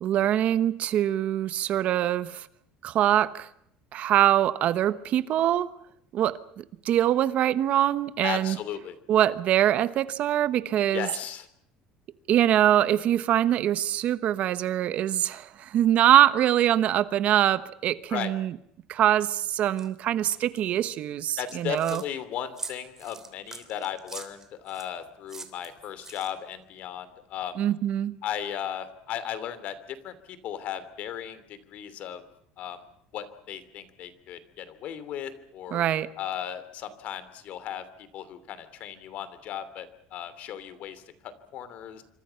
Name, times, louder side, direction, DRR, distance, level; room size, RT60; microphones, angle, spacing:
voice 1, 0.0-2.5 2.8-3.5 3.9-5.7 6.1-8.6 9.1-11.1 12.3-18.5 18.9-22.0 27.6-28.1 35.7-36.1, right 11 dB, 50° right, 1.1 m, -23 dB
voice 2, 8.2-9.0 10.9-11.5 18.1-18.3 21.4-27.6 28.2-32.2 32.6-32.8 33.1-35.8 36.2-42.0, left 10 dB, 55° left, 2.8 m, -36 dB
sound 1, 19.8-19.9 20.3-20.6 21.3-22.1 22.6-24.9 25.3-26.5, right 4 dB, 15° right, 3.1 m, -42 dB
27.5 x 25.0 x 5.8 m
cardioid pair, 140°, 3 cm